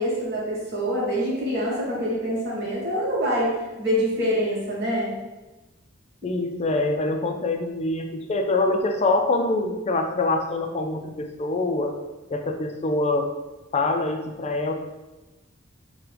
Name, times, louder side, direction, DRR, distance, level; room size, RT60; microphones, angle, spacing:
voice 1, 0.0-5.1, equal, 60° right, -5 dB, 1.1 m, -25 dB
voice 2, 6.2-11.9 12.3-13.3 13.7-14.8, left 2 dB, 35° left, 4 dB, 0.4 m, -24 dB
5.9 x 2.2 x 3.3 m, 1.1 s
head